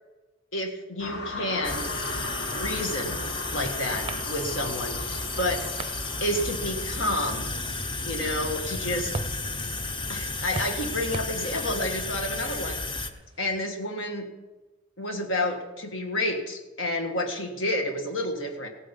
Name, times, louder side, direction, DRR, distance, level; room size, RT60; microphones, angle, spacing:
voice 1, 0.5-1.9 2.5-3.2 3.5-5.7 6.2-7.5 8.0-9.2 10.1-12.8 13.4-14.3 15.0-18.7, left 1 dB, 75° left, 4 dB, 1.7 m, -30 dB
sound 1, 1.0-10.2, left 1 dB, 60° left, 1.7 m, -39 dB
sound 2, 1.6-13.1, left 3 dB, 25° left, 0.7 m, -33 dB
sound 3, 2.9-13.7, right 3 dB, 30° right, 0.5 m, -43 dB
16.5 x 8.9 x 5.4 m, 1.1 s
head